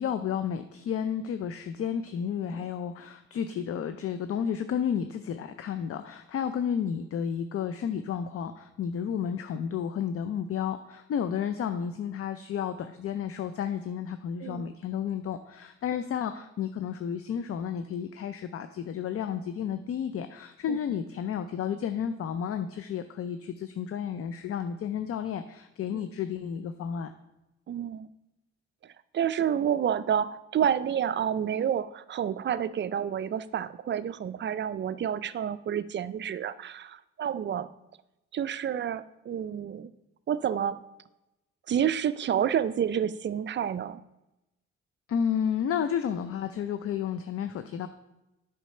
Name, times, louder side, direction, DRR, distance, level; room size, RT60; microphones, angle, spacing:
voice 1, 0.0-27.1 45.1-47.9, left 8 dB, 50° left, 10 dB, 0.5 m, -32 dB
voice 2, 27.7-28.1 28.8-37.7 38.3-39.9 40.3-40.8 41.7-44.0, right 9 dB, 40° right, 15 dB, 0.4 m, -29 dB
8.2 x 5.7 x 4.3 m, 0.94 s
cardioid pair, 90°, 30 cm